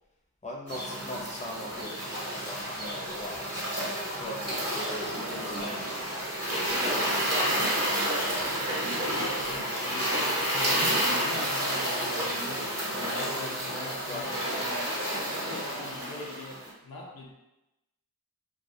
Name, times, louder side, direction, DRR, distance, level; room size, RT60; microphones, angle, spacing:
voice 1, 0.4-1.9 2.4-3.6 4.2-4.4 4.7-6.1 14.0-14.6, left 1 dB, 20° left, -2 dB, 0.6 m, -40 dB
sound 1, 0.7-16.7, equal, 40° right, 1.0 m, -30 dB
voice 2, 6.5-7.8 8.2-15.0 15.3-17.3, left 2 dB, 80° left, -2 dB, 0.6 m, -42 dB
2.3 x 2.3 x 2.6 m, 0.93 s
wide cardioid pair, 40°, 36 cm